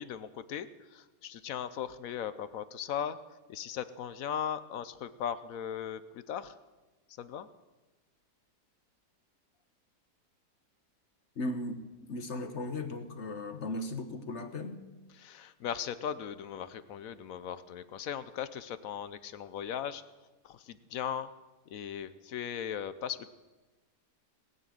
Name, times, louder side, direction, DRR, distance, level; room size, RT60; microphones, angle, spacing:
voice 1, 0.0-3.2 3.5-6.5 7.2-7.5 15.1-20.0 20.4-21.3 21.7-23.3, left 9 dB, 65° left, 1.0 m, -38 dB
voice 2, 11.4-11.8 12.1-14.8, left 2 dB, 50° left, 1.3 m, -36 dB
19.0 x 6.7 x 9.1 m
omnidirectional pair, 1.7 m